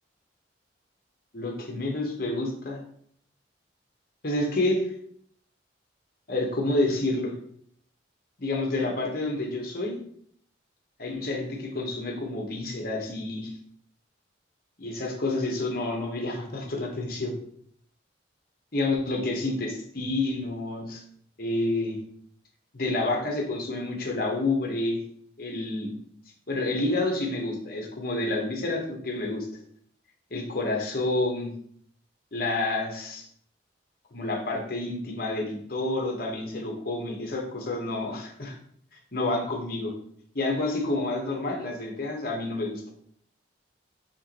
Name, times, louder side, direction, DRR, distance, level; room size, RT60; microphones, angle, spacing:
voice 1, 1.3-2.8 4.2-4.9 6.3-7.3 8.4-9.9 11.0-13.5 14.8-17.3 18.7-21.0 21.4-22.0 22.7-25.0 25.4-25.9 26.5-29.5 30.3-31.5 32.3-33.2 34.1-38.6 39.1-39.9 40.3-42.8, left 2 dB, 50° left, 0 dB, 1.0 m, -29 dB
5.7 x 2.9 x 2.9 m, 0.63 s
head